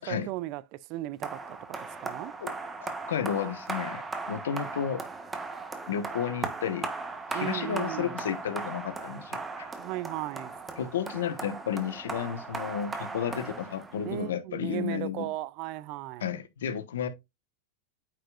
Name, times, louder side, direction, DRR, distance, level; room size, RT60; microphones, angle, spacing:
voice 1, 0.0-2.3 7.3-8.2 9.8-10.5 14.0-16.3, right 16 dB, 50° right, 0.5 m, -36 dB
sound 1, 1.2-14.2, right 3 dB, 15° right, 1.3 m, -37 dB
voice 2, 2.8-4.0 4.3-5.0 5.9-6.9 7.3-9.7 10.8-15.3 16.2-17.1, left 8 dB, 85° left, 1.3 m, -32 dB
9.1 x 5.1 x 2.5 m
hypercardioid pair, 115°, 0 cm